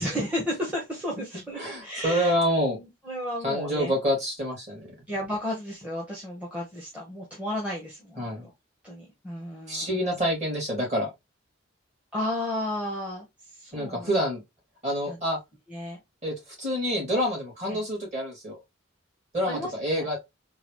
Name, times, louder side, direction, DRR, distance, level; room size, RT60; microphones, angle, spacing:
voice 1, 0.0-2.3 2.7-3.9 5.1-8.5 8.8-10.0 12.1-14.1 15.1-15.2 15.7-16.0 17.7-17.8 19.5-20.0, left 1 dB, 5° right, 0.9 m, -33 dB
voice 2, 1.6-2.8 3.4-4.9 8.2-8.4 9.7-11.1 13.7-14.4 14.8-15.4 16.2-18.6 19.3-20.2, equal, 35° right, 2.2 m, -27 dB
3.9 x 2.4 x 3.0 m
head